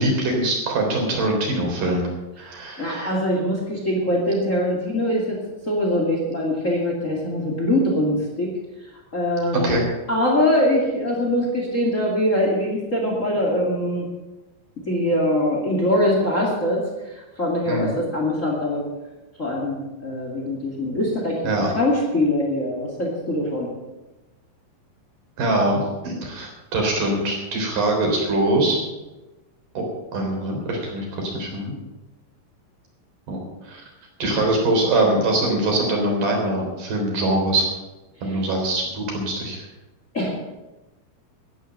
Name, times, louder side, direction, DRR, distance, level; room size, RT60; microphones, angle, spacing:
voice 1, 0.0-2.0 2.4-3.1 9.5-9.8 17.7-18.0 21.4-21.7 25.4-28.8 29.7-29.8 30.1-31.7 33.3-33.8 34.2-37.7 38.2-39.7, right 2 dB, 45° right, 0 dB, 4.7 m, -23 dB
voice 2, 2.8-5.4 5.7-8.5 9.1-9.8 10.1-14.0 14.9-16.8 17.1-18.9 19.4-21.4 21.7-23.7 40.1-40.3, left 1 dB, 40° left, 0 dB, 1.0 m, -22 dB
13.0 x 10.0 x 7.7 m, 1.1 s
omnidirectional pair, 5.7 m